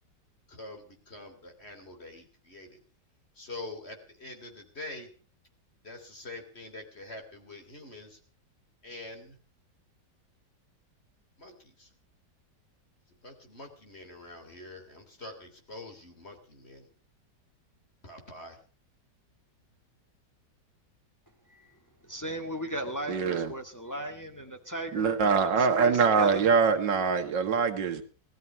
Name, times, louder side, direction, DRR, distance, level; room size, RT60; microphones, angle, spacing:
voice 1, 0.5-2.8 3.4-5.1 5.8-8.2 8.8-9.4 11.4-11.9 13.2-16.8 18.0-18.6, left 2 dB, 35° left, 3.4 m, -45 dB
voice 2, 22.0-26.4, right 1 dB, 10° left, 1.7 m, -37 dB
voice 3, 23.1-23.5 24.9-28.0, right 5 dB, 85° right, 2.3 m, -24 dB
18.0 x 13.0 x 5.8 m
omnidirectional pair, 1.9 m